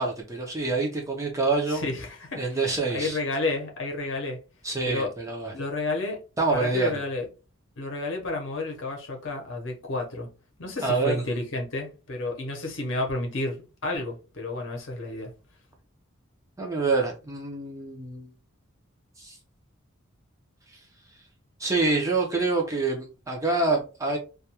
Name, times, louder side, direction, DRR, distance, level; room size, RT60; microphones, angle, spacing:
voice 1, 0.0-1.8 2.4-3.2 4.6-5.5 6.4-7.0 10.8-11.2 16.6-18.3 19.2-19.4 20.7-20.8 21.6-24.2, right 3 dB, 15° right, 0.5 m, -26 dB
voice 2, 1.7-2.4 2.9-4.4 4.8-5.1 5.5-6.2 6.5-7.3 7.8-10.3 10.6-15.3, left 2 dB, 60° left, 0.7 m, -31 dB
2.3 x 2.2 x 2.8 m
head